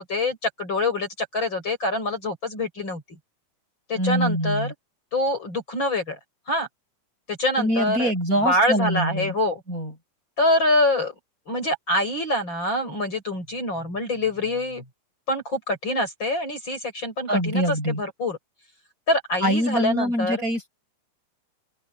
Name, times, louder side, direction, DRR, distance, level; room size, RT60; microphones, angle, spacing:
voice 1, 0.0-3.0 3.9-4.7 5.1-6.2 6.5-6.7 7.3-8.1 8.4-9.6 10.4-11.1 11.5-14.8 15.3-18.4 19.1-20.4, left 1 dB, 30° left, 6.9 m, -25 dB
voice 2, 4.0-4.7 7.6-9.3 9.7-9.9 17.3-18.0 19.4-20.7, equal, 20° right, 7.8 m, -24 dB
open air
omnidirectional pair, 4.0 m